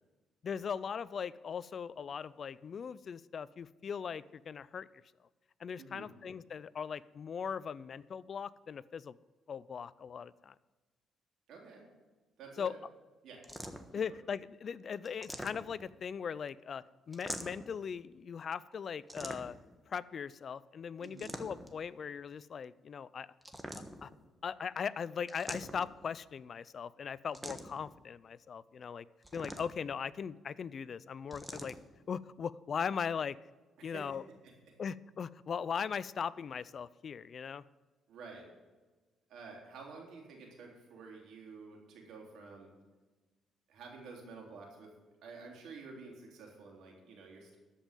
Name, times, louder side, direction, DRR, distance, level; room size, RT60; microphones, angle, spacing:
voice 1, 0.4-4.9 5.6-9.1 9.5-10.5 12.6-12.7 13.9-19.6 19.9-23.3 24.0-24.1 24.4-29.1 29.3-31.8 32.1-33.4 33.8-34.2 34.8-37.6, left 7 dB, 50° left, 19 dB, 0.4 m, -39 dB
voice 2, 5.8-6.1 11.5-11.9 12.4-12.8 13.2-13.5 14.1-14.2 21.0-21.3 33.8-34.2 34.4-34.7 38.1-38.5 39.3-42.7 43.7-44.9 45.2-47.6, right 4 dB, 80° right, 0 dB, 3.5 m, -50 dB
sound 1, 13.4-14.0 15.1-15.9 17.1-17.8 19.1-19.7 21.0-21.8 23.4-24.2 25.3-26.0 27.3-27.9 29.2-29.9 31.3-31.8, equal, 5° right, 1.3 m, -44 dB
13.5 x 5.4 x 9.0 m, 1.2 s
cardioid pair, 90°, 0 cm